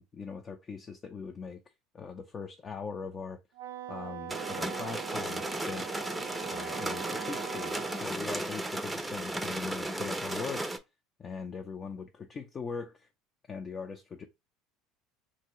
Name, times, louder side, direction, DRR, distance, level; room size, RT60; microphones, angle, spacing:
voice 1, 0.0-1.6 1.9-3.4 3.9-5.9 6.4-10.7 11.2-13.1 13.5-14.3, left 5 dB, 35° left, 0.5 m, -40 dB
Wind instrument woodwind instrument, 3.5-8.1, right 12 dB, 80° right, 0.4 m, -42 dB
sound 1, 4.3-10.8, right 1 dB, 10° right, 0.6 m, -35 dB
2.9 x 2.7 x 2.8 m
hypercardioid pair, 70°, 0 cm